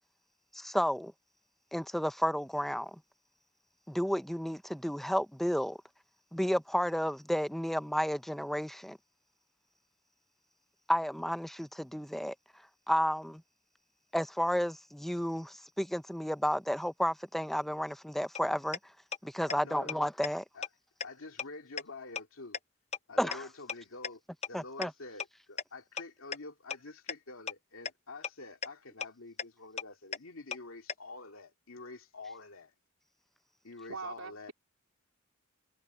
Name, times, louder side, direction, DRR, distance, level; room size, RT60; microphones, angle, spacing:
voice 1, 0.5-1.1 1.7-3.0 3.9-5.8 6.3-9.0 10.9-12.3 12.9-13.4 14.1-18.8 19.2-20.4 23.2-23.4 24.5-24.9, equal, ahead, 0.6 m, -32 dB
sound 1, 18.3-18.4 18.7-18.8 19.1-19.2 19.5-19.6 19.9-20.0 20.2-20.3 20.6-20.7 21.0-21.1 21.4-21.5 21.8-21.9 22.2-22.3 22.5-22.6 22.9-23.0 23.3-23.4 23.7-23.8 24.0-24.1 24.4-24.5 24.8-24.9 25.2-25.3 25.6-25.7 26.0-26.1 26.3-26.4 26.7-26.8 27.1-27.2 27.5-27.6 27.9-28.0 28.2-28.3 28.6-28.7 29.0-29.1 29.4-29.5 29.8-29.9 30.1-30.2 30.5-30.6 30.9-31.0, left 6 dB, 30° left, 0.9 m, -34 dB
voice 2, 19.5-20.0 20.5-20.7 21.0-22.6 23.1-32.7 33.6-34.5, left 3 dB, 85° left, 2.3 m, -47 dB
voice 3, 33.9-34.5, right 4 dB, 90° right, 3.8 m, -41 dB
head